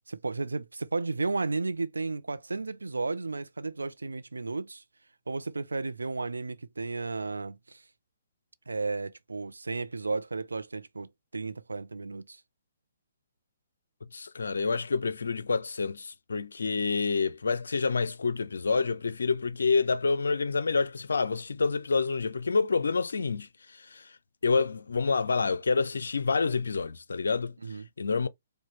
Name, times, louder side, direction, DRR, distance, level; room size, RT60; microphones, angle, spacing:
voice 1, 0.1-4.8 5.3-7.8 8.7-12.4 27.6-27.9, right 3 dB, 80° right, 0.4 m, -33 dB
voice 2, 14.1-23.5 23.8-24.1 24.4-27.5 28.0-28.3, left 4 dB, 70° left, 0.4 m, -28 dB
4.9 x 2.2 x 3.2 m
figure-of-eight pair, 125°, 0 cm